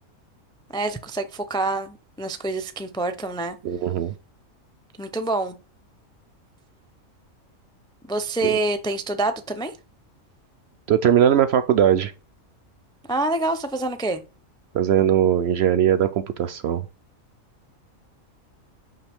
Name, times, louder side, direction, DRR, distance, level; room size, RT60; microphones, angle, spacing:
voice 1, 0.7-3.6 5.0-5.6 8.1-9.7 13.1-14.2, right 2 dB, 5° left, 0.3 m, -26 dB
voice 2, 3.6-4.1 8.4-8.6 10.9-12.1 14.7-16.8, right 9 dB, 65° right, 0.7 m, -20 dB
5.7 x 5.7 x 3.5 m
omnidirectional pair, 1.4 m